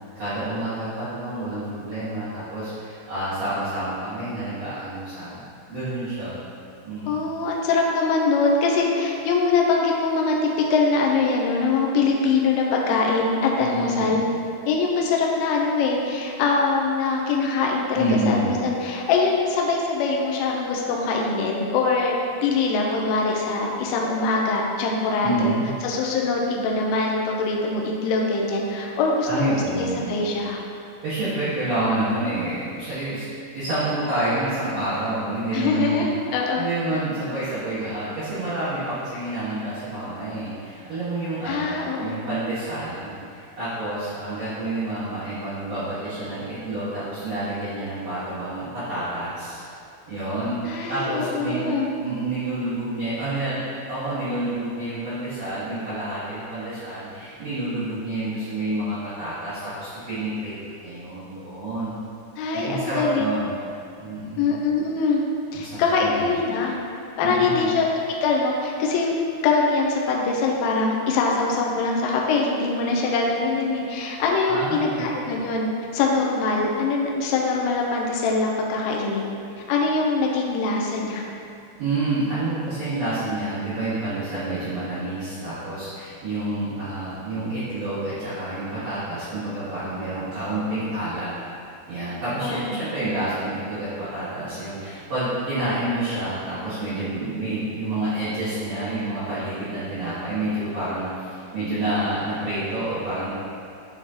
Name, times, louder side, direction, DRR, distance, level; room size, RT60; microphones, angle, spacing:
voice 1, 0.1-5.4 5.7-6.3 6.8-7.3 13.6-14.2 17.9-18.6 25.2-25.7 29.3-30.1 31.0-33.2 33.5-36.0 36.5-49.6 50.1-51.6 52.0-53.6 53.9-60.5 60.8-61.9 62.5-63.5 64.0-64.4 65.5-66.3 67.2-67.7 74.5-75.0 81.8-91.3 91.9-103.3, right 2 dB, 85° right, -16 dB, 1.4 m, -28 dB
voice 2, 7.1-10.3 10.7-14.2 14.7-22.2 22.4-25.5 25.8-30.6 35.5-36.6 41.5-42.2 50.7-51.9 62.4-63.2 64.4-65.2 65.5-66.8 67.2-67.9 68.2-69.1 69.4-79.3 79.7-81.2 92.4-92.9, left 4 dB, 85° left, -1 dB, 3.1 m, -23 dB
9.1 x 3.7 x 2.8 m, 2.5 s
omnidirectional pair, 5.7 m